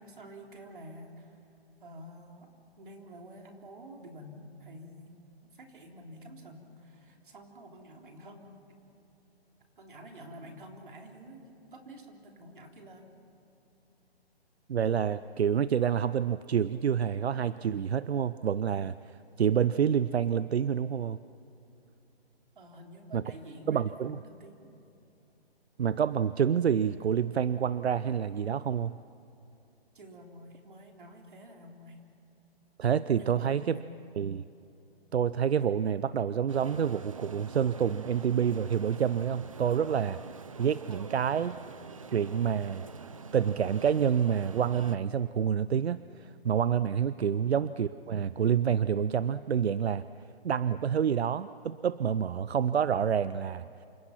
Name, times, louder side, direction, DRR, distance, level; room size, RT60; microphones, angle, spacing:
voice 1, 0.0-1.4 1.8-5.2 5.5-8.6 9.8-11.4 11.7-13.1 22.6-24.7 29.9-32.0 33.1-34.1, equal, 50° right, 2 dB, 3.7 m, -49 dB
voice 2, 14.7-18.9 19.4-21.2 23.1-23.2 23.7-24.2 25.8-29.0 32.8-33.8 34.2-34.4 35.1-40.2 40.6-41.6 42.1-42.8 43.3-50.0 50.4-53.7, right 8 dB, 80° right, 15 dB, 0.7 m, -28 dB
sound 1, 36.5-45.0, right 5 dB, 30° right, 0.9 m, -46 dB
28.0 x 26.0 x 5.9 m, 2.8 s
hypercardioid pair, 175°, 32 cm